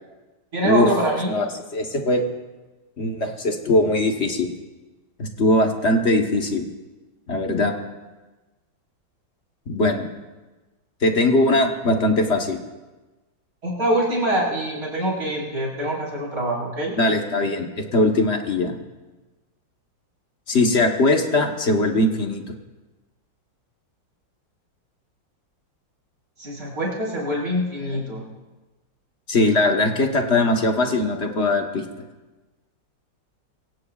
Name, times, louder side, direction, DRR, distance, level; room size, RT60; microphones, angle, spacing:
voice 1, 0.5-1.4 13.6-16.9 26.4-28.2, right 1 dB, 45° right, -5 dB, 5.0 m, -24 dB
voice 2, 1.7-2.2 3.0-4.5 5.2-6.7 7.3-7.7 9.7-10.1 11.0-12.6 17.0-18.8 20.5-22.4 29.3-31.8, left 2 dB, 40° left, 3 dB, 1.3 m, -20 dB
25.0 x 16.5 x 2.4 m, 1.2 s
omnidirectional pair, 2.0 m